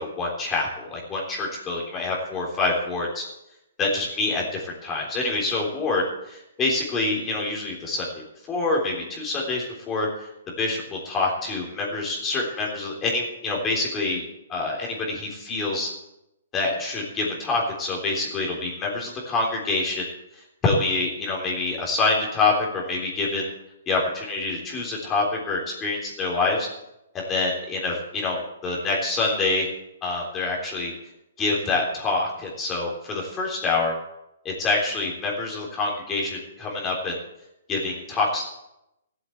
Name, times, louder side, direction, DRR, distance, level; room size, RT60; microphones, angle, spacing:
voice 1, 0.0-3.2 3.8-10.3 10.6-15.9 16.5-23.5 23.9-26.7 27.1-29.7 30.0-30.9 31.4-34.0 34.4-37.2 37.7-38.4, left 3 dB, 20° left, -2 dB, 3.5 m, -26 dB
14.5 x 8.1 x 7.9 m, 0.86 s
hypercardioid pair, 150°, 0 cm